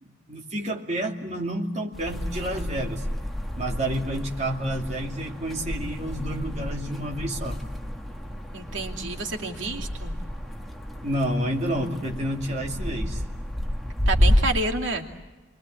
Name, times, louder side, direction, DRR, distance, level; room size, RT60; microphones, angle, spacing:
voice 1, 0.0-3.0 3.6-7.6 11.0-13.2, right 1 dB, 35° right, 0 dB, 2.5 m, -29 dB
sound 1, 1.9-14.6, equal, ahead, 1.5 m, -30 dB
voice 2, 8.5-10.2 14.1-15.1, right 2 dB, 80° right, 2 dB, 2.7 m, -29 dB
28.5 x 23.0 x 8.6 m, 1.2 s
head